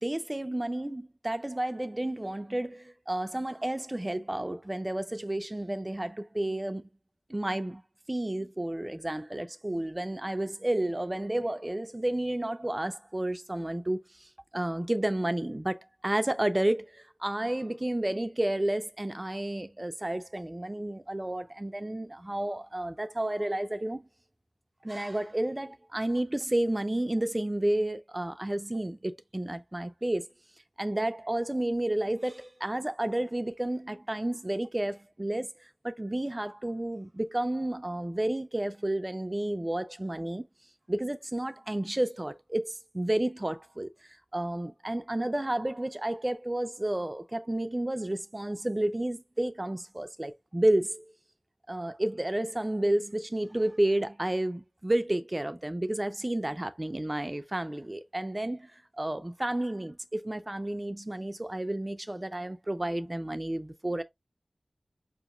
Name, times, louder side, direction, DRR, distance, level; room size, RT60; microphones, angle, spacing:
voice 1, 0.0-6.9 7.3-7.8 8.1-24.1 24.8-30.3 30.8-40.5 40.9-43.9 44.3-51.1 51.7-64.0, right 1 dB, 25° right, 0.5 m, -31 dB
5.1 x 2.9 x 2.4 m
wide cardioid pair, 55°, 0 cm